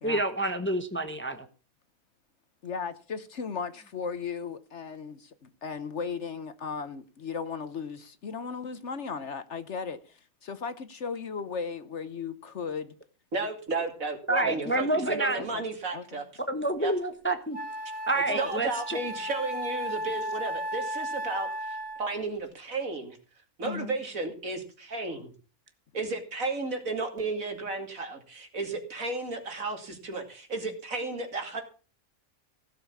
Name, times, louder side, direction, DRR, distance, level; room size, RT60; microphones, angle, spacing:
voice 1, 0.0-1.5 14.3-15.4 16.5-17.6 18.1-19.0, right 2 dB, 10° left, 1.1 m, -28 dB
voice 2, 2.6-12.9 14.5-14.8 15.0-15.7 15.9-16.2 18.3-18.5 23.6-23.9, left 5 dB, 55° left, 1.2 m, -36 dB
voice 3, 13.3-16.2 16.8-16.9 18.3-23.2 23.6-25.3 25.9-31.6, right 3 dB, 65° right, 3.0 m, -33 dB
Wind instrument woodwind instrument, 16.9-17.0 17.5-22.2, equal, 25° right, 1.5 m, -35 dB
16.5 x 7.4 x 7.2 m
omnidirectional pair, 1.5 m